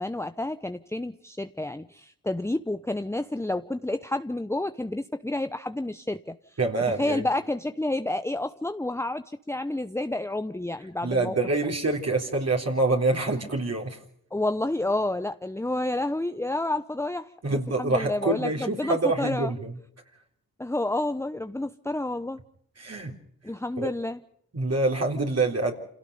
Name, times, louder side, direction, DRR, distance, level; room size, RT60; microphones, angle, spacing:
voice 1, 0.0-6.3 7.0-11.3 14.3-19.5 20.6-22.4 23.4-24.2, left 2 dB, 5° left, 9 dB, 0.9 m, -30 dB
voice 2, 6.6-7.3 11.0-14.0 17.4-19.7 22.8-23.1 23.8-23.9 24.5-25.7, right 2 dB, 45° right, 1 dB, 3.8 m, -26 dB
27.0 x 17.5 x 5.5 m, 0.69 s
cardioid pair, 55°, 36 cm